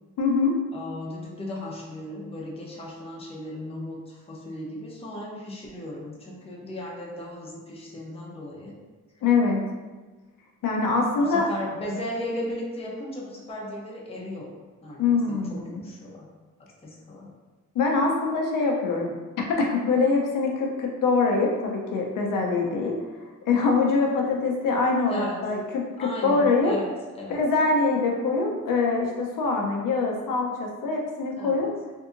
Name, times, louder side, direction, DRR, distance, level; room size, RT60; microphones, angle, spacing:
voice 1, 0.2-0.5 9.2-9.7 10.6-11.5 15.0-15.8 17.7-19.1 19.5-23.0 23.5-26.7 27.3-31.7, left 4 dB, 85° left, 0 dB, 0.6 m, -24 dB
voice 2, 0.7-8.8 9.2-9.3 11.2-14.5 14.8-16.3 16.6-17.3 25.1-25.5 26.0-27.4 31.4-31.6, left 1 dB, 20° left, -3 dB, 0.6 m, -36 dB
3.6 x 2.7 x 2.5 m, 1.3 s
wide cardioid pair, 135°, 32 cm